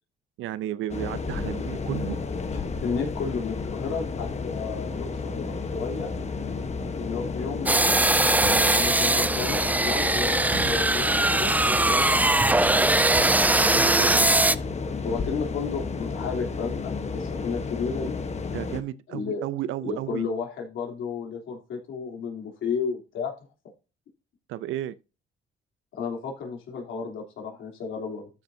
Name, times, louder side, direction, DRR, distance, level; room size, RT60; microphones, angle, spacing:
voice 1, 0.4-2.2 8.5-8.9 13.5-14.3 18.5-20.3 24.5-24.9, right 12 dB, 85° right, 0.6 m, -33 dB
sound 1, 0.9-18.8, left 4 dB, 35° left, 1.2 m, -32 dB
voice 2, 2.5-6.1 7.0-8.1 8.4-12.3 12.6-12.8 15.0-18.2 19.1-19.4 19.8-23.3 25.9-28.3, left 5 dB, 75° left, 3.3 m, -33 dB
sound 2, 7.7-14.6, right 2 dB, 10° right, 0.4 m, -21 dB
sound 3, 8.4-9.7 10.5-11.7 13.1-13.9, right 4 dB, 60° right, 3.5 m, -40 dB
13.0 x 6.8 x 2.8 m
cardioid pair, 90°, 20 cm